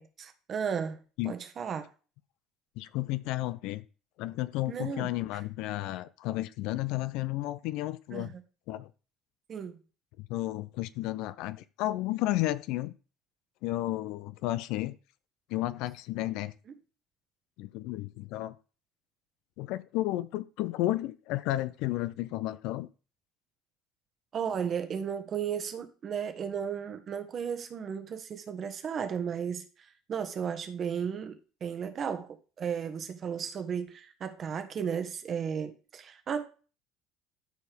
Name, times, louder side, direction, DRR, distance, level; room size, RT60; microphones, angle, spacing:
voice 1, 0.0-1.0 1.2-1.9 4.7-5.1 8.1-8.4 9.5-9.8 24.3-29.6 30.1-32.3 32.6-36.4, right 7 dB, 45° right, 1.3 m, -34 dB
voice 2, 2.8-3.8 4.2-8.3 8.7-8.9 10.2-12.9 13.6-15.0 15.5-16.5 17.6-18.6 19.6-22.9, left 16 dB, 65° left, 0.5 m, -32 dB
12.5 x 4.4 x 3.6 m
hypercardioid pair, 60°, 0 cm